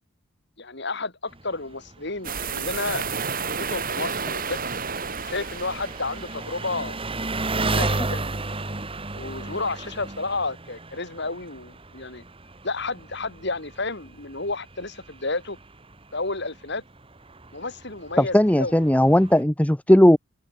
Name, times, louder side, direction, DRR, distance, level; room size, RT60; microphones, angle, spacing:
voice 1, 0.6-3.0 3.5-4.7 5.2-7.0 7.6-8.6 9.1-12.2 12.6-15.6 16.1-16.8 17.5-19.0, left 3 dB, 55° left, 3.5 m, -31 dB
Engine, 1.3-19.4, right 2 dB, 25° right, 2.2 m, -34 dB
sound 1, 2.2-6.7, right 5 dB, 40° right, 5.0 m, -31 dB
voice 2, 18.2-20.2, left 1 dB, 5° left, 0.7 m, -17 dB
head